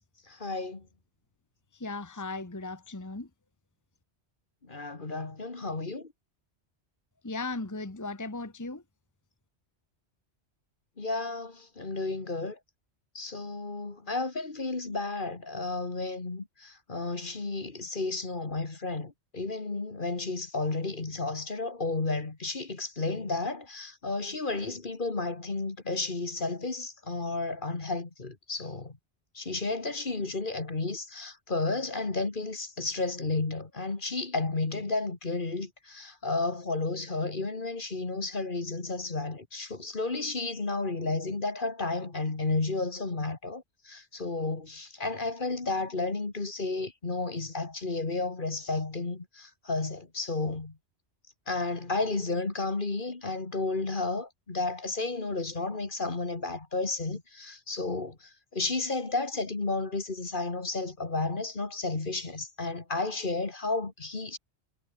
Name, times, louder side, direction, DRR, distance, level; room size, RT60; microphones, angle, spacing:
voice 1, 0.3-0.9 4.6-6.1 11.0-12.6 13.1-29.0 29.3-50.8 51.5-64.4, left 3 dB, 50° left, 2.3 m, -32 dB
voice 2, 1.7-3.3 7.2-8.8, left 3 dB, 15° left, 1.3 m, -37 dB
omnidirectional pair, 1.1 m